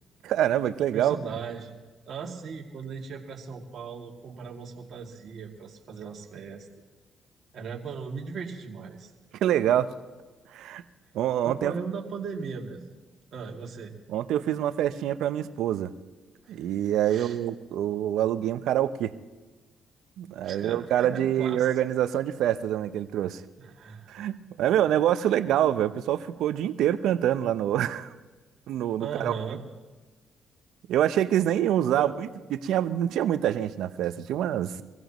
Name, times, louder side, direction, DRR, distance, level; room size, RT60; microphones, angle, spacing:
voice 1, 0.2-1.2 9.4-9.9 10.5-10.8 11.1-11.7 14.1-15.9 16.5-19.1 20.2-23.4 24.1-28.1 28.7-29.3 30.9-34.8, right 11 dB, 80° right, 12 dB, 0.7 m, -26 dB
voice 2, 0.9-1.7 2.1-6.7 7.5-9.1 11.4-12.8 13.3-13.9 16.4-16.7 17.0-17.4 20.4-21.6 23.6-24.4 29.0-29.6 31.9-32.1, right 6 dB, 60° right, 0 dB, 2.4 m, -38 dB
24.0 x 15.5 x 3.1 m, 1.3 s
supercardioid pair, 60°, 0 cm